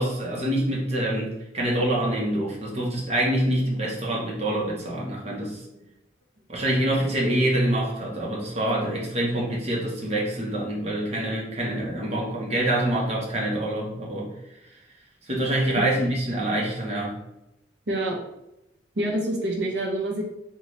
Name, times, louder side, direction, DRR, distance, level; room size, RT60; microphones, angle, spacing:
voice 1, 0.0-5.6 6.5-14.3 15.3-17.2, right 1 dB, 35° right, -3 dB, 0.9 m, -26 dB
voice 2, 17.9-18.2 18.9-20.2, right 1 dB, 80° right, 0 dB, 0.8 m, -27 dB
3.8 x 2.3 x 3.1 m, 0.87 s
head